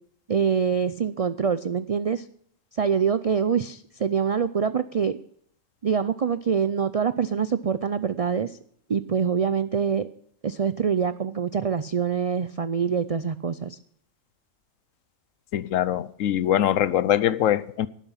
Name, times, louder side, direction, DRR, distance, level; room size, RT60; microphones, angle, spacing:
voice 1, 0.3-2.3 2.7-5.2 5.8-8.6 8.9-10.1 10.4-13.8, right 6 dB, 70° right, 0.3 m, -25 dB
voice 2, 15.5-17.9, left 11 dB, 80° left, 1.1 m, -23 dB
12.0 x 11.0 x 5.6 m
omnidirectional pair, 1.3 m